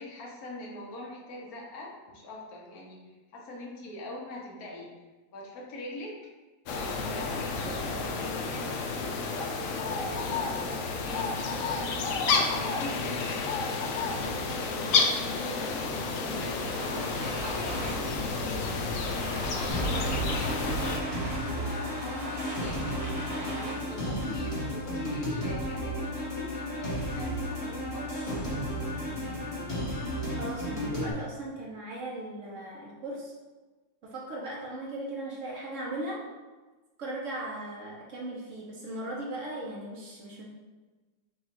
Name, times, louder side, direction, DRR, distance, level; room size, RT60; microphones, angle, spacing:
voice 1, 0.0-5.0 5.3-6.3 6.9-9.6 10.0-13.5 14.1-15.7 16.2-18.8 19.8-20.8 21.3-22.9 23.4-28.2, left 1 dB, 60° left, -2 dB, 1.3 m, -43 dB
sound 1, 6.7-21.0, left 4 dB, 75° left, 0.7 m, -30 dB
Domestic sounds home sounds, 16.3-25.2, equal, 25° right, 0.8 m, -41 dB
sound 2, 19.7-31.1, equal, 20° left, 0.9 m, -33 dB
voice 2, 30.4-33.3 34.0-36.2 37.0-40.5, right 1 dB, 60° right, -2 dB, 0.9 m, -38 dB
4.9 x 2.3 x 4.4 m, 1.2 s
omnidirectional pair, 2.0 m